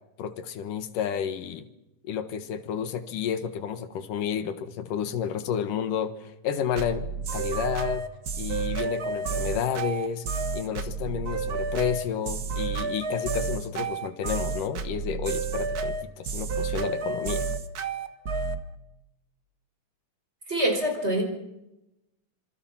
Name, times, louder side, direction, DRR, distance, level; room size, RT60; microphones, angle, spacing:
voice 1, 0.2-1.7 2.1-7.1 7.3-8.1 8.4-10.3 10.5-17.5, left 8 dB, 85° left, 10 dB, 3.1 m, -31 dB
sound 1, 6.8-18.6, right 4 dB, 55° right, 1.0 m, -30 dB
voice 2, 20.5-21.2, right 1 dB, 20° right, 4 dB, 4.9 m, -25 dB
26.0 x 25.0 x 5.8 m, 0.92 s
omnidirectional pair, 3.7 m